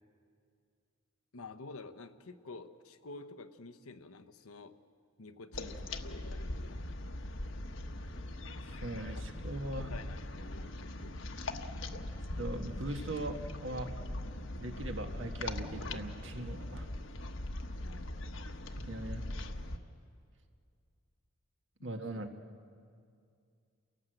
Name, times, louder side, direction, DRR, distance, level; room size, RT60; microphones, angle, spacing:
voice 1, 1.3-4.7 5.2-6.9 9.1-9.2 9.8-11.2 17.8-18.3 22.1-22.3, left 3 dB, 85° left, 9 dB, 1.1 m, -50 dB
sound 1, 5.5-19.8, left 1 dB, 60° left, 1.2 m, -41 dB
voice 2, 8.6-10.0 12.3-14.0 14.6-16.9 18.8-19.2 21.8-22.4, right 1 dB, 60° right, 5 dB, 1.6 m, -40 dB
29.5 x 18.0 x 7.9 m, 2.4 s
head